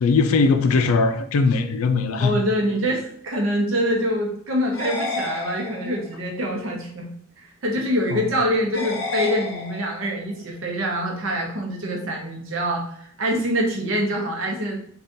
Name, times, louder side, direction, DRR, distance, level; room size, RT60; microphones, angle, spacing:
voice 1, 0.0-2.4 8.1-8.2, left 4 dB, 85° left, 8 dB, 0.4 m, -20 dB
voice 2, 2.2-7.1 7.6-14.7, equal, 65° right, 0 dB, 0.7 m, -25 dB
sound 1, 4.7-6.1 8.7-10.1, left 3 dB, 60° left, 0.7 m, -30 dB
3.6 x 2.4 x 2.6 m, 0.65 s
head